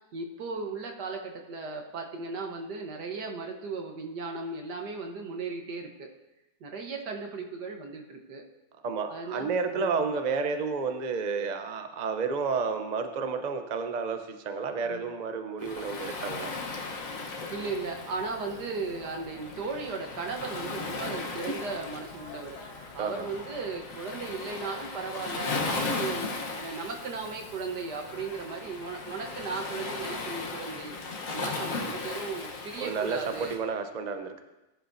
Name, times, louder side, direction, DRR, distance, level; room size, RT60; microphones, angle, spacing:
voice 1, 0.1-6.1 6.6-8.4 9.1-10.0 14.8-15.0 17.5-22.6 22.9-31.0 31.3-33.5, right 4 dB, 60° right, 3 dB, 1.8 m, -36 dB
voice 2, 8.8-16.5 23.0-23.3 32.8-34.4, right 5 dB, 80° right, 7 dB, 0.4 m, -31 dB
Waves surf, 15.6-33.6, left 3 dB, 45° left, 1.4 m, -37 dB
sound 1, 18.4-24.9, left 3 dB, 80° left, 2.6 m, -51 dB
19.5 x 11.0 x 2.7 m, 1.0 s
omnidirectional pair, 2.1 m